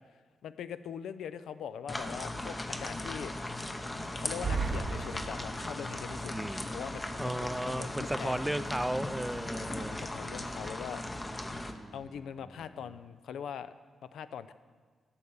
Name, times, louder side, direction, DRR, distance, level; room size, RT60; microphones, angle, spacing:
voice 1, 0.4-3.3 4.1-6.3 6.7-8.4 9.4-11.0 11.9-13.7 14.1-14.5, left 8 dB, 75° left, 13 dB, 0.3 m, -42 dB
sound 1, 1.9-11.7, left 1 dB, 25° left, 0.8 m, -38 dB
sound 2, 3.8-12.9, left 1 dB, 55° left, 1.6 m, -54 dB
sound 3, 4.2-5.8, right 4 dB, 55° right, 0.5 m, -35 dB
voice 2, 6.3-6.7 7.2-10.1 11.6-12.0, right 1 dB, 10° right, 13 dB, 0.4 m, -35 dB
8.4 x 5.5 x 6.7 m, 1.5 s
hypercardioid pair, 40°, 0 cm